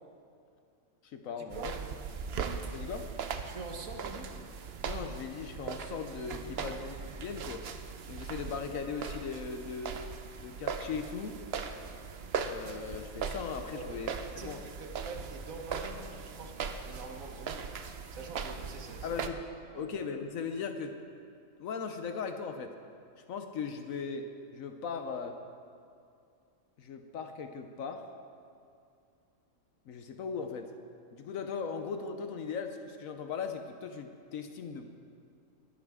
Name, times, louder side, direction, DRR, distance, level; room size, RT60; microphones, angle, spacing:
voice 1, 1.0-1.7 2.7-3.1 4.8-7.7 8.1-10.0 10.4-11.4 12.4-14.1 14.4-14.6 19.0-19.4 19.7-21.0 21.6-22.8 23.2-25.4 26.8-28.1 29.9-30.7 31.1-34.9, left 5 dB, 75° left, 6 dB, 1.2 m, -38 dB
sound 1, 1.5-19.3, right 6 dB, 55° right, 0.8 m, -39 dB
voice 2, 3.4-4.4 6.6-6.7 13.7-14.0 14.4-17.8 18.1-19.2 19.7-19.9, right 3 dB, 75° right, 4 dB, 1.6 m, -45 dB
21.0 x 11.5 x 3.6 m, 2.4 s
omnidirectional pair, 1.4 m